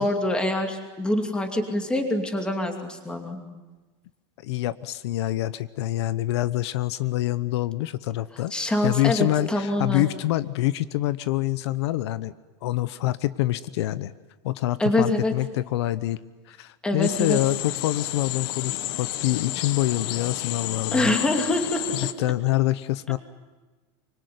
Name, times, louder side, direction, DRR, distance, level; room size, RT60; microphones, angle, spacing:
voice 1, 0.0-3.4 8.5-10.0 14.8-15.3 16.8-17.4 20.9-21.8 22.2-22.3, left 1 dB, 5° left, 4 dB, 2.6 m, -25 dB
voice 2, 4.4-8.5 8.8-12.3 12.6-14.1 14.4-16.2 16.5-21.2 21.9-23.2, left 16 dB, 75° left, 15 dB, 0.9 m, -26 dB
sound 1, 17.0-22.1, left 15 dB, 55° left, 1.1 m, -31 dB
25.0 x 24.5 x 9.5 m, 1.2 s
supercardioid pair, 175°, 14 cm